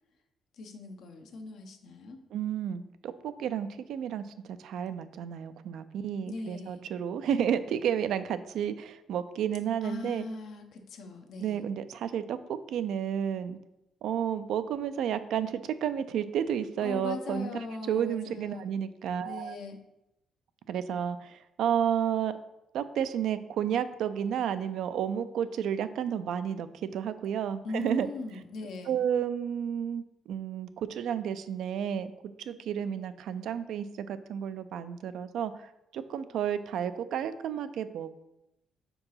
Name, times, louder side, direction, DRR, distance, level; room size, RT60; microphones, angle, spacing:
voice 1, 0.5-2.2 6.3-6.8 9.8-11.6 16.8-18.6 19.2-19.8 27.6-29.0, left 3 dB, 75° left, 5 dB, 0.8 m, -40 dB
voice 2, 2.3-10.3 11.4-12.4 12.7-13.6 14.0-17.5 17.9-19.6 20.7-22.3 22.7-28.1 28.9-32.1 32.5-38.2, right 9 dB, 80° right, 12 dB, 0.4 m, -31 dB
4.6 x 3.8 x 5.6 m, 0.90 s
cardioid pair, 90°, 0 cm